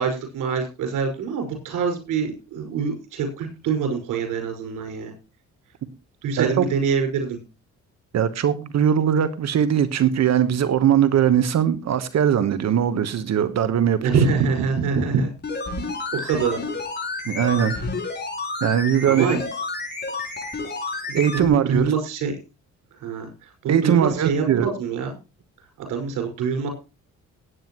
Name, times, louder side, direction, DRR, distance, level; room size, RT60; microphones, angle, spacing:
voice 1, 0.0-5.1 6.2-7.4 14.0-15.3 16.1-16.6 19.1-19.4 21.1-22.3 22.9-25.1 25.8-26.7, right 5 dB, 90° right, 5 dB, 5.4 m, -25 dB
voice 2, 8.1-14.2 17.2-17.7 18.6-19.3 21.1-21.9 23.7-24.7, right 9 dB, 60° right, 12 dB, 1.2 m, -20 dB
sound 1, 15.4-21.5 21.7-21.8, left 3 dB, 35° left, 6.5 m, -30 dB
17.0 x 9.6 x 3.0 m, 0.29 s
cardioid pair, 90°, 30 cm